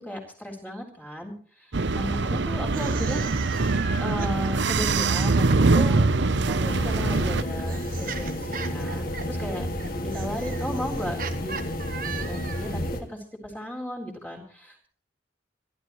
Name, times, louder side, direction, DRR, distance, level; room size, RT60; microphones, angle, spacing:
voice 1, 0.0-3.2 4.0-9.7 10.0-11.7 12.0-12.8 13.1-14.9, left 1 dB, 10° left, -1 dB, 3.9 m, -36 dB
sound 1, 1.7-7.4, right 3 dB, 65° right, 0.7 m, -23 dB
sound 2, 2.6-5.9 6.9-12.8, right 6 dB, 45° right, 1.4 m, -38 dB
sound 3, 6.6-13.0, equal, 50° left, 2.1 m, -31 dB
26.5 x 13.0 x 3.1 m, 0.43 s
head